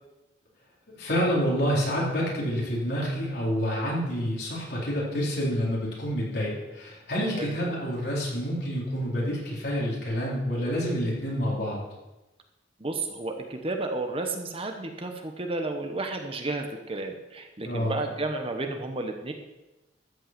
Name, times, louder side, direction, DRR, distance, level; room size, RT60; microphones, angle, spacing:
voice 1, 0.9-11.8 17.6-17.9, equal, 60° left, -5 dB, 4.3 m, -28 dB
voice 2, 12.8-19.3, right 2 dB, 30° right, 4 dB, 1.1 m, -32 dB
13.5 x 5.6 x 7.6 m, 1.0 s
head